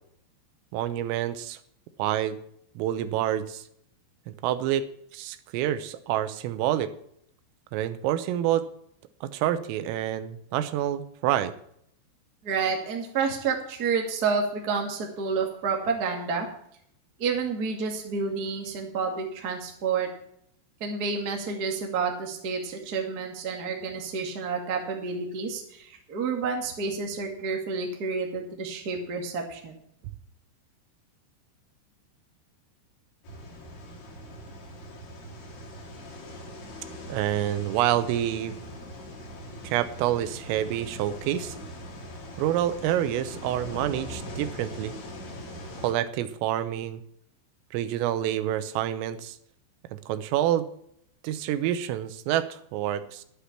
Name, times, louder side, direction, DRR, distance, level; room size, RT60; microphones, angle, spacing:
voice 1, 0.7-1.6 2.0-2.4 2.8-3.6 4.3-4.9 5.1-6.9 7.7-8.7 9.2-11.5 37.1-38.5 39.6-41.6 42.4-44.9 45.8-47.0 47.7-49.4 49.9-50.7 51.2-53.2, right 12 dB, 85° right, 12 dB, 3.5 m, -27 dB
voice 2, 12.4-16.5 17.2-20.1 20.8-29.8, right 5 dB, 70° right, 1 dB, 0.9 m, -29 dB
sound 1, 33.2-45.9, equal, 60° left, 4.0 m, -41 dB
11.5 x 9.9 x 5.9 m, 0.69 s
omnidirectional pair, 5.8 m